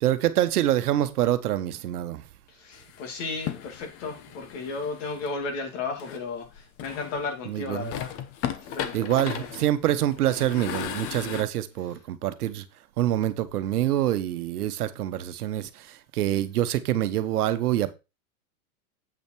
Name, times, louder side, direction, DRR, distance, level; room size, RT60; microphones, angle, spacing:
voice 1, 0.0-2.2 7.5-7.9 8.9-12.6 13.0-17.9, right 12 dB, 80° right, 1.1 m, -26 dB
voice 2, 2.5-8.2 8.7-9.5, left 4 dB, 55° left, 2.9 m, -34 dB
sound 1, 2.7-5.3 6.0-7.3 7.7-11.4, left 10 dB, 30° left, 0.9 m, -36 dB
8.1 x 5.5 x 4.5 m
supercardioid pair, 145°, 45 cm